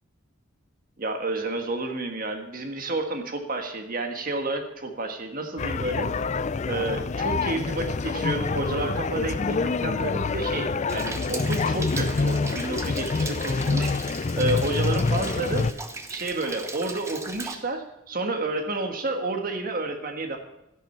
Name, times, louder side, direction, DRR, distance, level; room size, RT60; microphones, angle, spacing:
voice 1, 1.0-6.1 6.7-13.9 14.3-15.7 16.1-20.4, right 2 dB, 45° right, 5 dB, 1.6 m, -30 dB
sound 1, 5.6-15.7, left 4 dB, 35° left, 0.4 m, -26 dB
Rain, 10.9-17.5, right 2 dB, 15° right, 1.0 m, -37 dB
12.0 x 11.0 x 5.7 m, 0.88 s
head